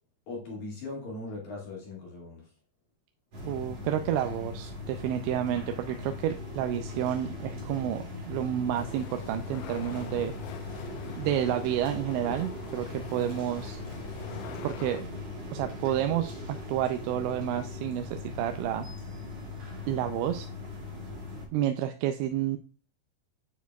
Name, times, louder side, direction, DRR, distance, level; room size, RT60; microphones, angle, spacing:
voice 1, 0.3-2.4, left 2 dB, 50° left, -3 dB, 2.9 m, -39 dB
sound 1, 3.3-21.5, left 2 dB, 45° right, 2.5 m, -39 dB
voice 2, 3.4-10.3 11.2-13.8 14.6-15.0 15.5-18.9 19.9-20.5 21.5-22.6, right 11 dB, 85° right, 7 dB, 2.7 m, -30 dB
sound 2, 8.8-15.0, left 8 dB, 80° left, 2.7 m, -46 dB
9.3 x 4.5 x 2.2 m, 0.39 s
omnidirectional pair, 5.3 m